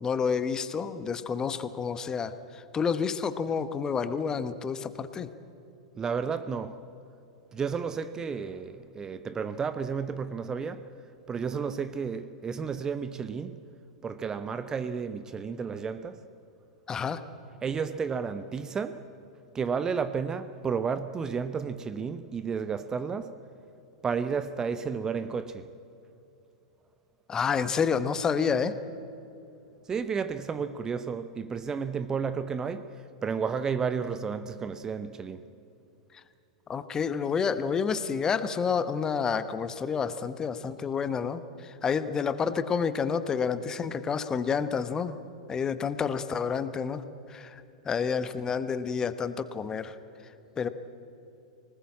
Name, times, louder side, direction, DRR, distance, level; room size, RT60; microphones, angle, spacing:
voice 1, 0.0-5.3 16.9-17.2 27.3-28.8 36.7-45.1 45.5-47.0 47.3-50.0 50.6-50.7, left 6 dB, 20° left, 1.1 m, -29 dB
voice 2, 6.0-6.8 7.5-10.9 11.3-13.6 14.0-16.3 17.6-19.1 19.5-23.4 24.0-25.7 29.9-35.4, right 6 dB, 20° right, 0.7 m, -32 dB
24.5 x 19.5 x 8.6 m
figure-of-eight pair, 95°, 3 cm